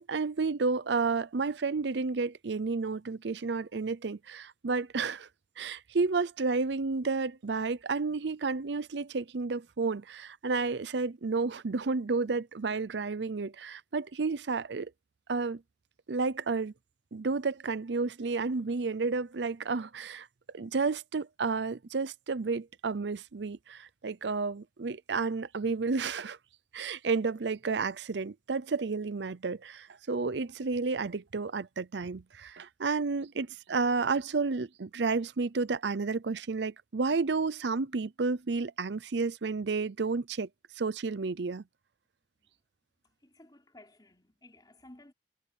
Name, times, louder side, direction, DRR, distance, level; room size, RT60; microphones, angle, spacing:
voice 1, 0.0-5.3 5.6-14.9 15.3-15.6 16.1-16.7 17.1-20.3 20.5-26.4 26.7-40.5 40.8-41.6, right 4 dB, 80° right, 0.6 m, -31 dB
voice 2, 43.0-45.1, left 1 dB, 25° left, 3.4 m, -56 dB
head